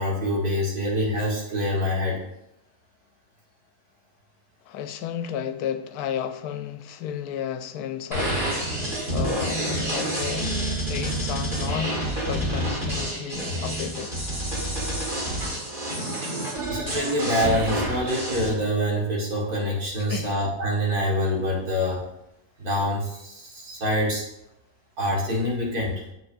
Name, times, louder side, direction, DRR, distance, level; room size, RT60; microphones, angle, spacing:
voice 1, 0.0-2.2 16.7-22.0 22.6-24.3 25.0-26.0, equal, 70° right, 2.3 m, -25 dB
voice 2, 4.7-10.6 10.9-12.0 12.2-14.1 16.1-16.2 20.1-20.3, left 9 dB, 75° left, 1.1 m, -33 dB
sound 1, 8.1-18.5, right 1 dB, 30° right, 2.1 m, -28 dB
7.9 x 7.4 x 2.6 m
omnidirectional pair, 1.7 m